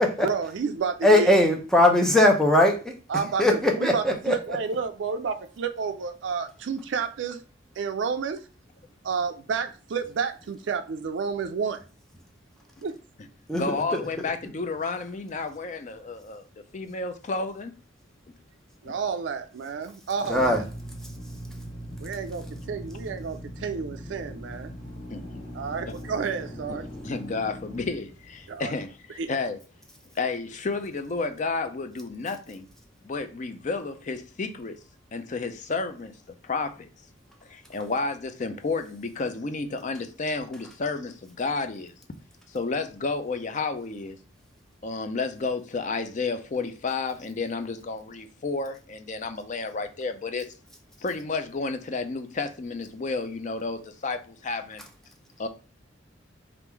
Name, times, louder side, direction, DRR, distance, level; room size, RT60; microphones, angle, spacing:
voice 1, 0.2-1.3 3.1-3.4 3.8-7.4 7.8-8.4 9.0-11.8 12.8-13.0 18.8-20.6 22.0-24.7 25.5-26.9 28.5-28.7 29.2-29.3, right 5 dB, 70° right, 0.4 m, -30 dB
voice 2, 1.0-2.9 3.4-4.3 13.5-13.6 13.9-14.0 20.3-20.6, left 1 dB, 5° left, 0.7 m, -20 dB
voice 3, 13.5-16.5 16.7-17.7 18.8-18.9 25.1-25.4 27.0-29.6 30.1-32.7 33.0-34.8 35.1-36.9 37.5-41.9 42.5-44.2 44.8-50.5 51.0-54.8 55.4-55.5, left 3 dB, 40° left, 0.5 m, -31 dB
Drill, 20.2-28.8, equal, 90° left, 1.7 m, -40 dB
3.6 x 2.5 x 4.4 m
head